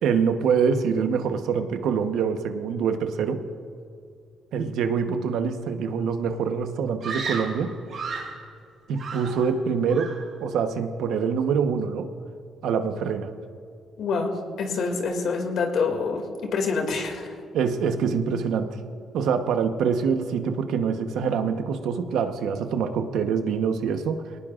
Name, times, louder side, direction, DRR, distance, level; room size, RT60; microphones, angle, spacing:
voice 1, 0.0-3.4 4.5-7.7 8.9-12.1 12.6-13.3 17.5-18.8 19.1-24.2, right 6 dB, 80° right, 7 dB, 1.0 m, -25 dB
Screaming, 7.0-8.4 8.9-9.6 9.9-10.3, right 5 dB, 65° right, 3.3 m, -33 dB
voice 2, 14.0-14.3 14.6-17.4, left 4 dB, 70° left, 4 dB, 2.4 m, -26 dB
21.5 x 18.5 x 2.5 m, 2.4 s
cardioid pair, 90°, 0 cm